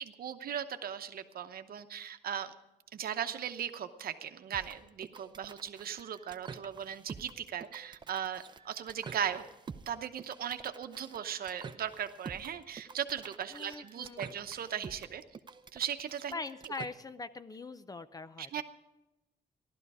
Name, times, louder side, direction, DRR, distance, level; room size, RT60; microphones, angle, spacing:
voice 1, 0.0-2.5 2.9-9.4 9.9-15.2 15.7-16.3 18.4-18.6, right 9 dB, 65° right, 9 dB, 0.9 m, -38 dB
sound 1, 4.5-16.9, right 5 dB, 25° right, 0.6 m, -48 dB
voice 2, 13.5-14.3 16.3-18.6, left 3 dB, 20° left, 13 dB, 0.4 m, -42 dB
15.5 x 12.0 x 4.8 m, 0.98 s
wide cardioid pair, 170°, 17 cm